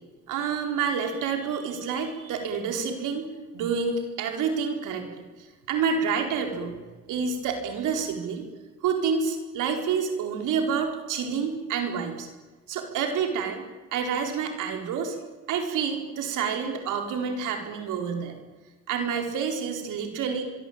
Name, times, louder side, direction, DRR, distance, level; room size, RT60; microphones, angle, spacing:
voice 1, 0.3-5.1 5.7-6.7 7.1-8.5 8.8-12.3 12.7-13.6 13.9-15.2 15.5-18.4 18.9-20.4, right 6 dB, 90° right, 4 dB, 4.5 m, -28 dB
25.0 x 23.0 x 8.8 m, 1.3 s
cardioid pair, 90°, 30 cm